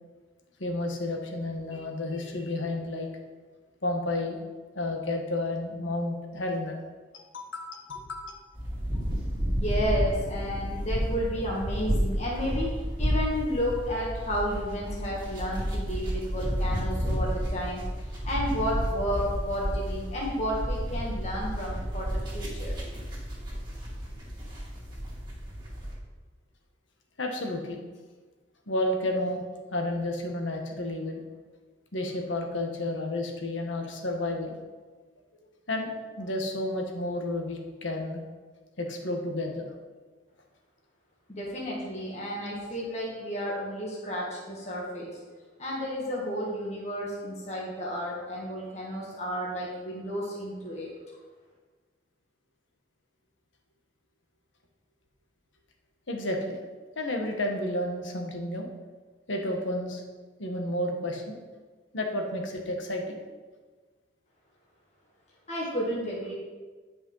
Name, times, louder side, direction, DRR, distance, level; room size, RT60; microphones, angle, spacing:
voice 1, 0.6-3.1 3.8-4.4 4.7-6.8 7.1-8.4 27.2-27.8 28.7-29.4 29.7-31.2 31.9-34.6 35.7-38.2 38.8-39.7 56.1-56.6 57.0-58.7 59.3-60.0 60.4-61.4 61.9-63.2, left 1 dB, 85° left, 2 dB, 1.5 m, -31 dB
sound 1, 8.5-25.9, equal, 25° right, 2.3 m, -31 dB
voice 2, 9.5-12.7 13.0-17.8 18.2-22.7 41.3-45.1 45.6-50.9 65.5-66.4, equal, 35° left, -4 dB, 1.8 m, -32 dB
10.0 x 5.5 x 5.5 m, 1.4 s
head